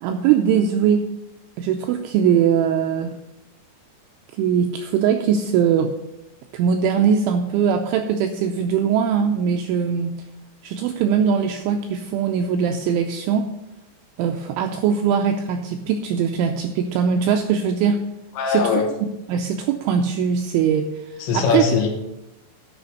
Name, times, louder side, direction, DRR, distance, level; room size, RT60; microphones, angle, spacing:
voice 1, 0.0-1.1 1.6-3.1 4.4-5.9 6.5-10.2 10.6-13.5 14.2-18.1 18.5-18.7 19.3-21.7, right 7 dB, 90° right, 5 dB, 2.7 m, -21 dB
voice 2, 18.4-18.9 21.2-21.9, left 5 dB, 70° left, 2 dB, 3.2 m, -20 dB
9.7 x 5.2 x 8.0 m, 0.92 s
omnidirectional pair, 6.0 m